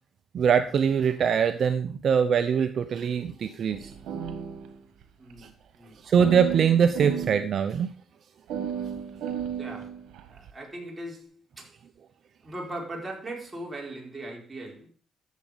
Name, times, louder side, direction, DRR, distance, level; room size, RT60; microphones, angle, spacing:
voice 1, 0.3-3.9 5.4-5.5 6.0-7.9, right 7 dB, 60° right, 0.8 m, -23 dB
sound 1, 3.7-5.0 5.3-5.4 6.2-7.5 8.5-10.5, right 8 dB, 85° right, 1.6 m, -34 dB
voice 2, 5.2-5.5 5.8-6.0 9.6-9.9 10.3-11.7 12.4-14.9, right 1 dB, 20° right, 4.6 m, -39 dB
12.5 x 7.5 x 5.1 m
cardioid pair, 90°, 0 cm